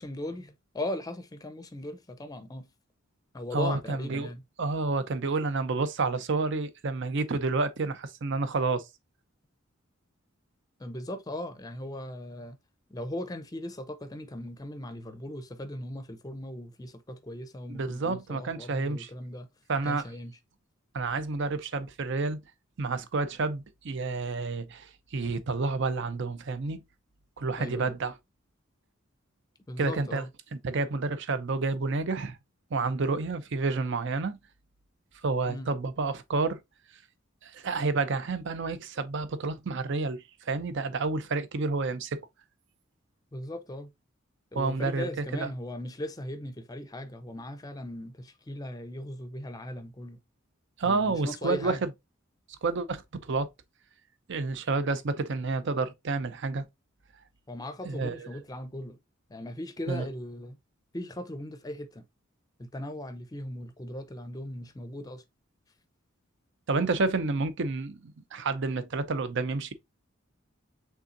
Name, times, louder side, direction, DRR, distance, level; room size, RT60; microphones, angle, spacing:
voice 1, 0.0-2.7 3.3-4.4 10.8-12.6 12.9-19.5 19.8-20.3 27.6-28.0 29.7-30.3 35.5-35.7 43.3-43.9 44.5-50.2 50.8-51.8 57.5-59.0 59.3-60.6 60.9-62.0 62.6-65.2, left 1 dB, 20° left, 0.5 m, -38 dB
voice 2, 3.5-4.3 4.6-8.8 17.7-19.1 19.7-20.0 20.9-22.4 22.8-26.8 27.4-28.1 29.8-30.2 30.6-32.4 32.7-34.4 35.2-36.6 37.4-42.2 44.5-45.5 50.8-51.8 52.6-53.0 53.3-53.5 54.3-56.7 57.8-58.3 59.9-60.0 66.7-69.7, right 3 dB, 60° right, 0.6 m, -29 dB
5.5 x 3.5 x 2.5 m
head